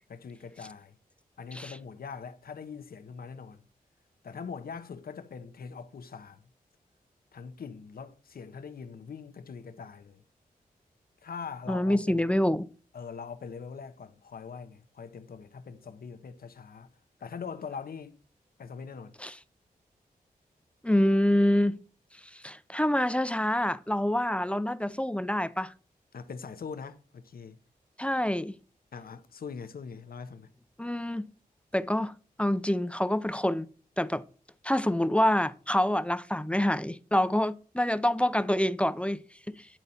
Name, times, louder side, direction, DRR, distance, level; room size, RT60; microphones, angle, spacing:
voice 1, 0.1-1.0 1.4-3.6 4.2-6.5 7.3-10.2 11.2-12.3 12.9-16.9 17.2-18.2 18.6-19.1 26.1-27.6 28.9-30.5, left 5 dB, 75° left, 0.9 m, -42 dB
voice 2, 11.7-12.7 19.2-19.4 20.8-21.8 22.3-25.7 28.0-28.5 30.8-31.2 31.7-33.7 34.0-34.2 34.6-39.7, left 1 dB, 5° left, 0.5 m, -26 dB
10.0 x 4.0 x 4.1 m
cardioid pair, 65°, 16 cm